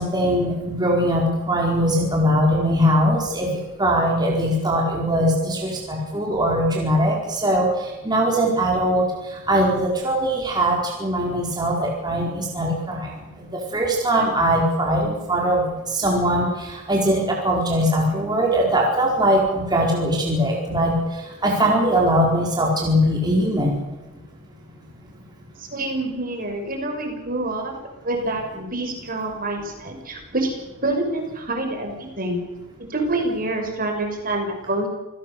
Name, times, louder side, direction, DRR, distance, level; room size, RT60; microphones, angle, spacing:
voice 1, 0.0-3.5 3.8-23.8, equal, 20° right, -2 dB, 4.5 m, -21 dB
voice 2, 25.6-27.7 28.0-30.5 30.8-32.4 32.9-34.9, right 2 dB, 40° right, 3 dB, 5.9 m, -26 dB
28.0 x 17.5 x 6.9 m, 1.1 s
head